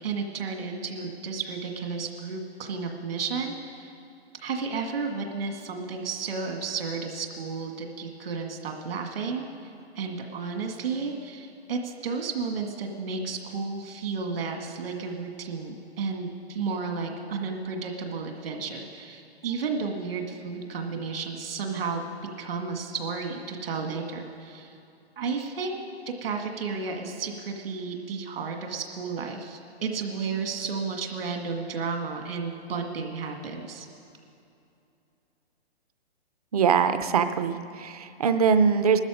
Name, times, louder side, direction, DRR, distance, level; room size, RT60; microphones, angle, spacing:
voice 1, 0.0-3.9 4.4-22.0 22.4-24.8 25.2-25.8 26.2-33.9, right 5 dB, 60° right, 3 dB, 2.0 m, -32 dB
voice 2, 36.5-39.0, right 6 dB, 35° right, 10 dB, 0.6 m, -22 dB
21.5 x 13.0 x 5.0 m, 2.7 s
hypercardioid pair, 165°, 32 cm